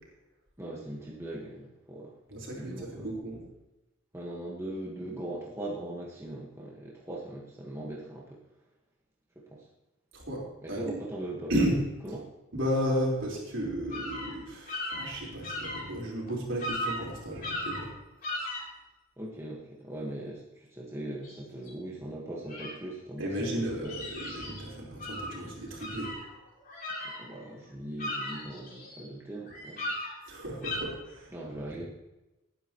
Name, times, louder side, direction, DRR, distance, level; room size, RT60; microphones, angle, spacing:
voice 1, 0.6-2.1 2.5-3.1 4.1-8.4 9.5-9.7 10.6-11.5 12.0-12.2 19.2-23.9 27.0-29.9 31.3-31.8, right 1 dB, 10° right, -4 dB, 1.6 m, -40 dB
voice 2, 2.3-3.4 10.1-10.4 10.7-11.0 11.5-11.8 12.5-17.9 23.2-26.1 30.3-31.3, equal, 60° right, -3 dB, 4.5 m, -33 dB
sound 1, 13.9-14.3 14.7-15.8 16.3-16.4 16.6-17.0 17.4-17.9 18.2-18.6 21.2-21.4 21.7-21.8 22.5-22.7 23.5-24.6 25.0-25.4 25.8-27.5 27.8-29.0 29.5-30.1 30.6-30.8, left 1 dB, 40° left, 3.7 m, -36 dB
19.0 x 9.9 x 3.1 m, 1.0 s
head